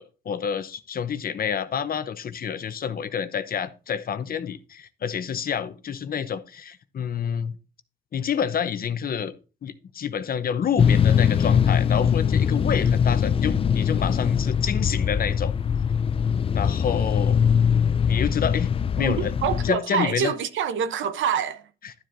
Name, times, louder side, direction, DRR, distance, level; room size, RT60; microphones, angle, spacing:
voice 1, 0.0-7.6 8.1-9.3 9.6-15.5 16.5-17.4 18.1-18.7 18.9-19.3 19.6-20.3 21.8-21.9, left 7 dB, 50° left, 0.7 m, -28 dB
sound 1, 10.8-19.7, left 7 dB, 30° left, 0.3 m, -22 dB
voice 2, 19.0-21.7, right 7 dB, 75° right, 0.8 m, -26 dB
11.5 x 7.6 x 2.6 m
cardioid pair, 90°, 20 cm